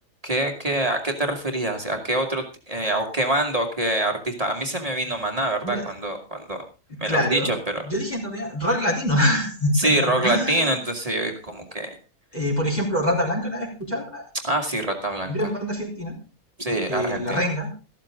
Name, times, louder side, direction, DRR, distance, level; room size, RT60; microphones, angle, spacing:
voice 1, 0.2-6.6 7.0-7.8 9.7-12.0 14.4-15.3 16.6-17.4, right 1 dB, 25° right, 3 dB, 2.3 m, -25 dB
voice 2, 7.1-7.5 7.8-10.7 12.3-14.2 15.2-16.2 16.9-17.7, equal, 30° left, -2 dB, 4.3 m, -25 dB
14.0 x 13.5 x 3.7 m, 0.31 s
omnidirectional pair, 1.5 m